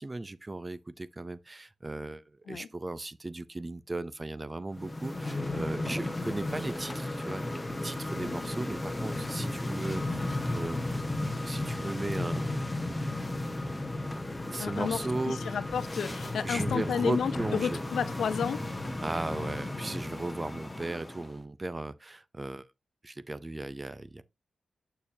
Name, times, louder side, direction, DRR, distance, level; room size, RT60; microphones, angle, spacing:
voice 1, 0.0-10.8 11.4-12.7 14.5-15.6 16.4-17.8 19.0-22.7 23.0-24.2, right 2 dB, 20° right, 0.5 m, -36 dB
sound 1, 4.7-21.4, left 2 dB, 15° left, 1.0 m, -34 dB
voice 2, 8.1-8.5 14.6-15.0 15.3-18.6, left 7 dB, 90° left, 0.6 m, -32 dB
7.2 x 6.5 x 2.7 m
wide cardioid pair, 120°, 0 cm